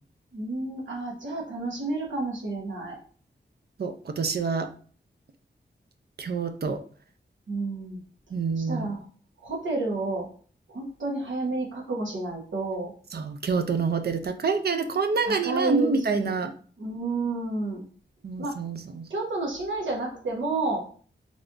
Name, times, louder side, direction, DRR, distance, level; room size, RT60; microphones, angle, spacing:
voice 1, 0.3-3.0 7.5-8.0 8.6-9.0 9.4-10.3 10.7-12.9 15.2-16.4 16.8-17.8 18.4-18.6 19.1-20.8, right 2 dB, 85° right, -1 dB, 1.2 m, -30 dB
voice 2, 3.8-4.7 6.2-6.8 8.3-8.9 13.1-16.5 18.2-19.1, right 4 dB, 60° right, 8 dB, 0.5 m, -27 dB
3.6 x 3.4 x 2.6 m, 0.43 s
wide cardioid pair, 85°, 19 cm